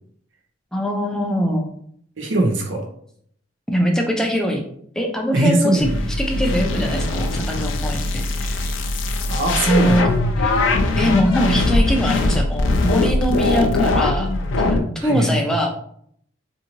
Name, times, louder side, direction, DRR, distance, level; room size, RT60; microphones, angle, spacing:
voice 1, 0.7-1.7 3.7-4.6 5.0-5.9 6.2-8.7 9.6-10.6 11.0-14.3 14.6-15.7, equal, 5° left, 1 dB, 0.4 m, -22 dB
voice 2, 2.2-2.9 5.3-6.1 9.3-10.2 15.0-15.4, right 2 dB, 75° right, 2 dB, 0.7 m, -21 dB
sound 1, 5.8-14.8, left 2 dB, 75° left, 0.4 m, -21 dB
2.7 x 2.6 x 2.9 m, 0.66 s
head